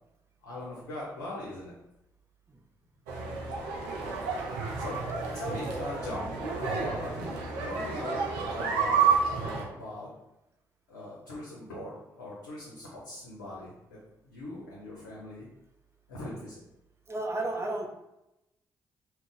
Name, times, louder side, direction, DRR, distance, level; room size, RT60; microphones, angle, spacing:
voice 1, 0.4-1.7 4.8-4.9 5.3-10.1 10.9-14.0 14.2-15.5 16.1-16.6, left 1 dB, 90° left, -7 dB, 0.5 m, -40 dB
sound 1, 3.1-9.6, right 5 dB, 85° right, 0.4 m, -30 dB
voice 2, 17.1-17.9, right 2 dB, 30° right, 2 dB, 0.6 m, -32 dB
2.4 x 2.1 x 3.8 m, 0.91 s
hypercardioid pair, 40°, 9 cm